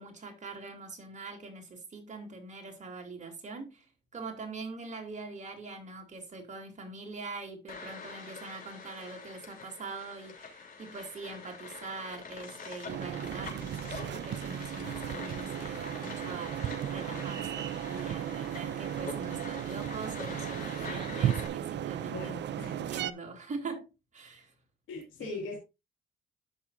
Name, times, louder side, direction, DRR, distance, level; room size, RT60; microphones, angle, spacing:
voice 1, 0.0-22.3 22.7-24.5 25.2-25.4, right 3 dB, 40° right, 2.8 m, -43 dB
sound 1, 7.7-21.5, left 4 dB, 45° left, 3.0 m, -45 dB
sound 2, 12.9-23.1, right 11 dB, 60° right, 0.6 m, -35 dB
voice 2, 22.1-22.9 24.9-25.6, left 3 dB, 85° left, 2.2 m, -40 dB
13.0 x 5.5 x 2.5 m
cardioid pair, 90°, 20 cm